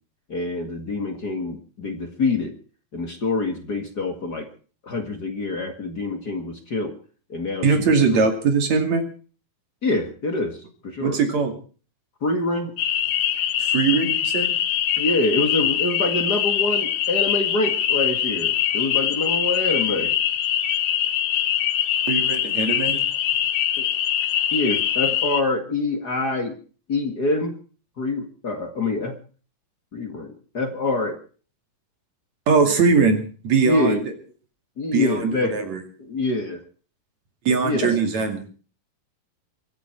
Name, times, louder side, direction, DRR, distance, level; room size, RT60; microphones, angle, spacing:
voice 1, 0.3-2.5 2.9-4.5 4.8-6.9 7.3-8.2 9.8-11.2 12.2-12.7 15.0-20.1 23.8-23.9 24.5-26.6 26.9-27.6 28.0-29.2 29.9-31.2 33.6-34.0 34.8-35.6 36.0-36.6 37.6-37.9, left 2 dB, 35° left, 5 dB, 1.7 m, -25 dB
voice 2, 7.6-9.0 11.0-11.5 13.6-14.5 22.1-23.0 32.5-34.1 34.9-35.8 37.5-38.4, right 5 dB, 50° right, 6 dB, 3.5 m, -21 dB
sound 1, 12.8-25.4, left 10 dB, 85° left, 1.4 m, -23 dB
24.5 x 12.0 x 4.6 m, 0.40 s
omnidirectional pair, 4.4 m